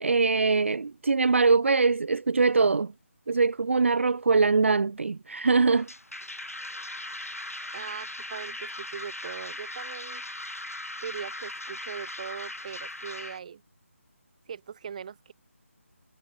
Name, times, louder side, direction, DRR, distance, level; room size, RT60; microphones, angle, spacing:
voice 1, 0.0-2.9 3.3-5.9, right 4 dB, 60° right, 0.4 m, -23 dB
sound 1, 5.8-13.4, left 1 dB, 90° left, 1.0 m, -39 dB
voice 2, 7.7-10.2 11.0-13.6 14.5-15.3, right 7 dB, 30° right, 1.0 m, -40 dB
figure-of-eight pair, 155°, 8 cm